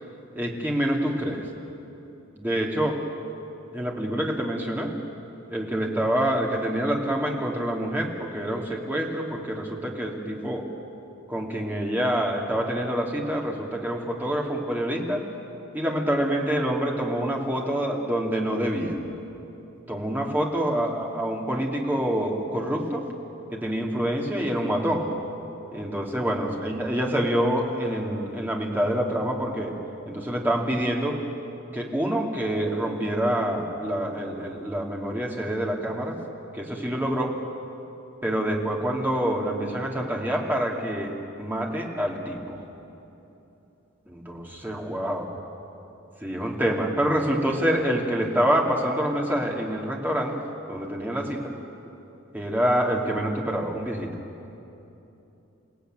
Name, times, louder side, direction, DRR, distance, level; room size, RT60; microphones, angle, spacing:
voice 1, 0.3-1.4 2.4-3.0 3.7-4.9 5.5-10.7 11.3-15.2 15.7-19.0 19.9-23.1 23.5-25.1 25.7-29.8 30.0-31.2 31.7-36.2 36.5-37.4 38.2-42.6 44.1-45.3 46.2-50.3 50.7-51.5 52.3-54.1, equal, 10° right, -1 dB, 2.6 m, -26 dB
29.0 x 17.0 x 9.2 m, 3.0 s
head